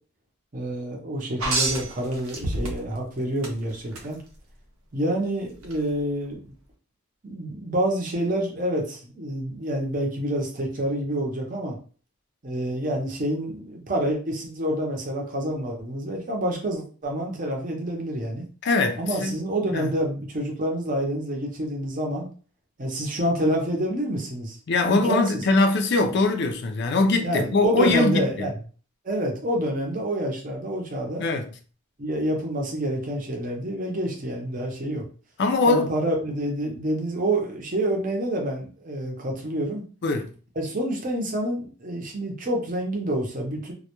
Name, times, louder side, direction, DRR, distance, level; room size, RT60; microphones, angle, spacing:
voice 1, 0.5-4.2 4.9-6.5 7.2-11.8 12.4-18.5 19.0-22.3 22.8-24.6 24.9-25.4 27.2-28.5 29.0-31.2 32.0-35.0 35.6-39.8 40.6-43.7, right 1 dB, 40° right, 0.6 m, -27 dB
sound 1, 1.4-3.0 3.4-4.1 5.6-5.7, right 2 dB, 85° right, 0.7 m, -27 dB
voice 2, 18.6-19.3 19.7-19.9 24.7-28.5 31.2-31.5 35.4-35.9 40.0-40.3, left 3 dB, 50° left, 0.4 m, -22 dB
2.2 x 2.1 x 2.9 m
head